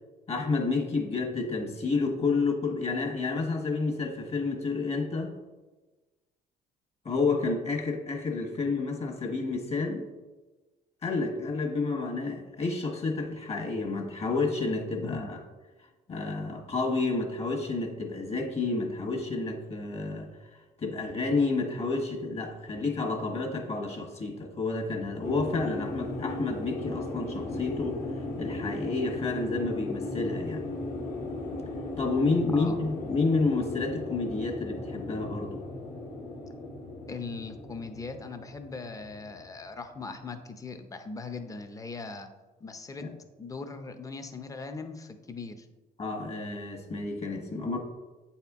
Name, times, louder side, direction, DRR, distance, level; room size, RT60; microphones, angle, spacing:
voice 1, 0.3-5.4 7.0-10.1 11.0-15.4 16.1-20.3 20.8-28.0 28.4-30.6 32.0-35.6 43.0-43.1 46.0-47.8, left 3 dB, 35° left, 2 dB, 1.3 m, -30 dB
voice 2, 15.0-15.3 32.5-32.8 35.4-35.5 37.1-42.3 42.6-43.1 43.4-45.7, left 4 dB, 20° left, 7 dB, 0.6 m, -40 dB
sound 1, 25.2-40.1, left 2 dB, 60° left, 1.4 m, -37 dB
8.0 x 4.3 x 3.6 m, 1.2 s
cardioid pair, 110°, 17 cm